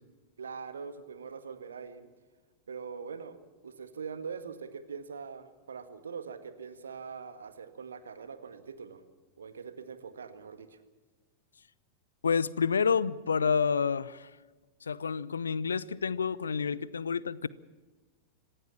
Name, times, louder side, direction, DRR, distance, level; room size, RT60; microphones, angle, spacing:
voice 1, 0.4-2.1 2.7-3.4 3.6-9.0 9.4-10.8, right 6 dB, 70° right, 10 dB, 1.7 m, -42 dB
voice 2, 12.2-14.3 14.8-17.5, left 6 dB, 70° left, 21 dB, 0.7 m, -29 dB
26.0 x 15.5 x 7.3 m, 1.3 s
figure-of-eight pair, 90°, 0 cm